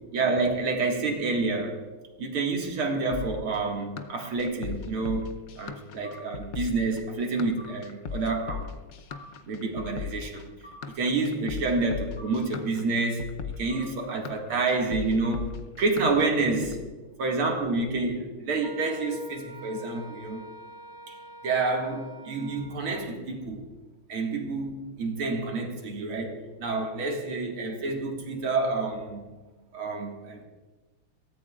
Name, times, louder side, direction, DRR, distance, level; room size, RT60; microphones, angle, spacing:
voice 1, 0.1-1.8 2.2-8.7 9.5-10.5 10.8-13.3 13.6-15.5 15.8-16.8 17.2-20.4 21.1-21.2 21.4-23.7 24.1-29.2 29.7-30.4, right 3 dB, 85° right, 1 dB, 2.8 m, -28 dB
sound 1, 3.1-16.8, left 6 dB, 85° left, 0.6 m, -38 dB
sound 2, 6.0-6.2 7.6-7.8 9.1-9.3 10.6-10.8 12.2-12.4 13.7-13.9 15.2-15.4, left 1 dB, 20° left, 3.7 m, -46 dB
Wind instrument woodwind instrument, 18.6-23.0, right 2 dB, 50° right, 3.7 m, -46 dB
22.5 x 17.0 x 2.4 m, 1.3 s
omnidirectional pair, 2.3 m